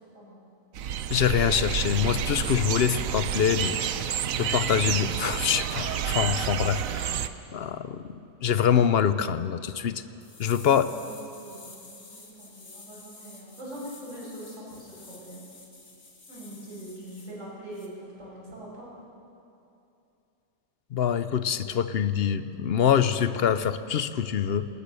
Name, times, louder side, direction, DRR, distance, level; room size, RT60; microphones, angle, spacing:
sound 1, 0.7-7.3, right 9 dB, 85° right, 1.1 m, -29 dB
voice 1, 1.1-7.1 7.5-8.0 8.4-10.0 10.4-10.9 20.9-24.7, left 8 dB, 55° left, 13 dB, 0.8 m, -25 dB
sound 2, 10.2-17.3 17.7-17.9, left 3 dB, 85° left, 2.7 m, -50 dB
voice 2, 10.7-15.4 16.3-18.9, right 1 dB, 65° right, -6 dB, 7.0 m, -43 dB
19.5 x 19.5 x 6.9 m, 2.7 s
omnidirectional pair, 1.4 m